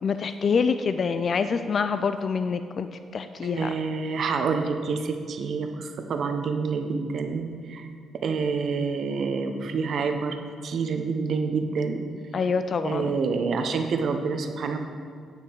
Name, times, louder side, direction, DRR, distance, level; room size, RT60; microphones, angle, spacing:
voice 1, 0.0-3.7 12.3-13.2, left 5 dB, 50° left, 10 dB, 0.3 m, -26 dB
voice 2, 3.4-7.9 8.2-10.4 10.6-12.1 12.8-14.8, right 5 dB, 60° right, 6 dB, 0.8 m, -27 dB
9.3 x 7.1 x 4.6 m, 2.1 s
cardioid pair, 90°, 0 cm